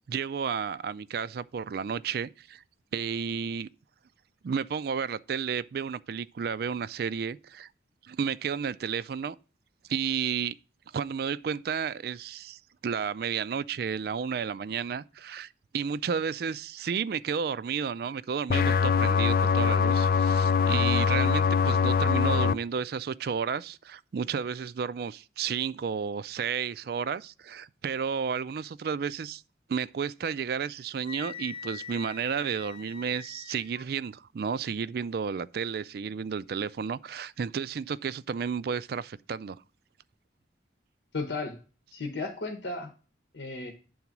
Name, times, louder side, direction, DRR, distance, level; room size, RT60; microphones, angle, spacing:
voice 1, 0.1-2.6 2.9-3.7 4.4-7.7 8.0-9.4 9.9-10.5 10.9-29.4 29.7-39.6, right 6 dB, 55° right, 0.3 m, -32 dB
sound 1, 18.5-22.5, left 6 dB, 50° left, 0.4 m, -23 dB
Wind instrument woodwind instrument, 31.0-33.9, left 6 dB, 25° left, 0.8 m, -43 dB
voice 2, 41.1-41.6 41.9-42.9 43.3-43.7, left 3 dB, 75° left, 1.0 m, -34 dB
9.5 x 3.9 x 5.9 m
head